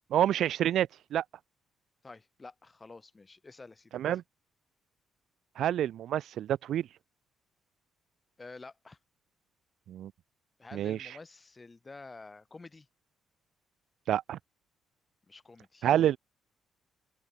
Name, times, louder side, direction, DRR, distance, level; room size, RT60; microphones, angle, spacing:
voice 1, 0.1-1.2 3.9-4.2 5.6-6.9 9.9-10.1 10.7-11.1 14.1-14.4 15.8-16.2, right 11 dB, 75° right, 1.0 m, -28 dB
voice 2, 2.0-4.1 8.4-9.0 10.6-12.9 15.3-15.9, left 3 dB, 25° left, 6.1 m, -49 dB
open air
cardioid pair, 90°, 0 cm